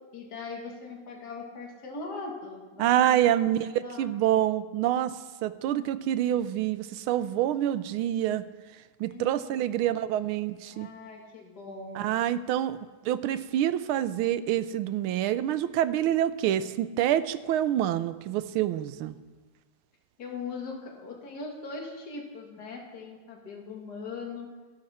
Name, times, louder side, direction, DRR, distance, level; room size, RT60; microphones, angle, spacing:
voice 1, 0.1-4.1 9.1-9.7 10.7-12.2 20.2-24.5, left 4 dB, 50° left, 0 dB, 2.3 m, -40 dB
voice 2, 2.8-8.4 9.0-10.9 11.9-12.8 13.0-19.1, right 12 dB, 85° right, 13 dB, 1.4 m, -27 dB
14.0 x 11.5 x 4.2 m, 1.3 s
omnidirectional pair, 2.3 m